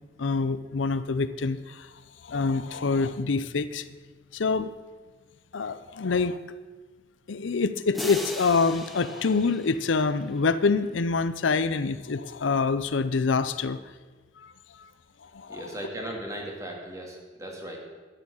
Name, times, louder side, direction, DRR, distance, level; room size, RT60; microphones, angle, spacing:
voice 1, 0.2-1.9 2.2-3.9 4.3-4.8 5.5-6.4 7.3-13.8 14.4-14.5 14.8-14.9 15.2-15.7, left 4 dB, 80° left, 13 dB, 0.6 m, -26 dB
sound 1, 7.9-10.8, equal, ahead, 1.2 m, -39 dB
voice 2, 15.5-17.8, right 1 dB, 15° right, 0 dB, 2.5 m, -37 dB
11.0 x 11.0 x 6.5 m, 1.4 s
head